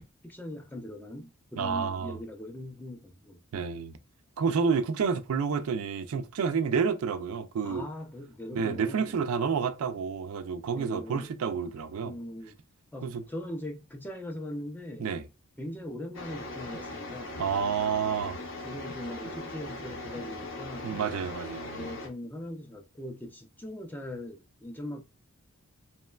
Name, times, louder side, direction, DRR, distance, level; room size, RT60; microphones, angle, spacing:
voice 1, 0.2-3.4 7.6-9.2 10.7-11.3 12.0-12.5 12.9-15.1 15.6-17.4 18.0-21.0 21.7-25.0, left 1 dB, 10° left, 0.4 m, -40 dB
voice 2, 1.6-2.2 3.5-4.0 4.4-7.8 8.5-12.1 13.0-13.2 15.0-15.2 17.4-18.4 20.8-21.9, right 6 dB, 80° right, 0.4 m, -29 dB
sound 1, 16.1-22.1, left 2 dB, 60° left, 0.6 m, -40 dB
3.0 x 2.1 x 2.2 m
head